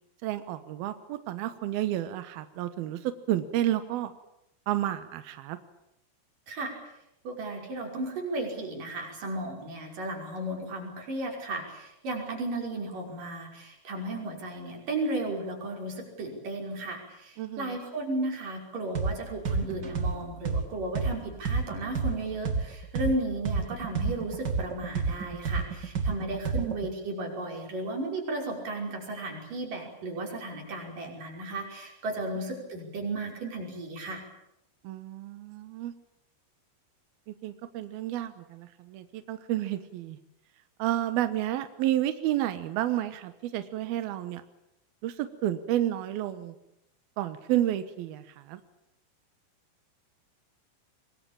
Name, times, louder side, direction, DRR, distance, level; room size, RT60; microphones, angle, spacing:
voice 1, 0.2-4.1 4.7-5.6 17.4-17.8 26.6-26.7 34.8-35.9 37.3-40.2 40.8-44.4 45.0-46.6 47.2-48.6, right 13 dB, 75° right, 11 dB, 2.3 m, -31 dB
voice 2, 7.3-34.2, right 2 dB, 40° right, 1 dB, 6.9 m, -34 dB
sound 1, 18.9-19.1 19.4-23.1 23.4-26.9, right 4 dB, 60° right, 1.0 m, -29 dB
25.0 x 22.0 x 8.9 m, 0.81 s
omnidirectional pair, 5.9 m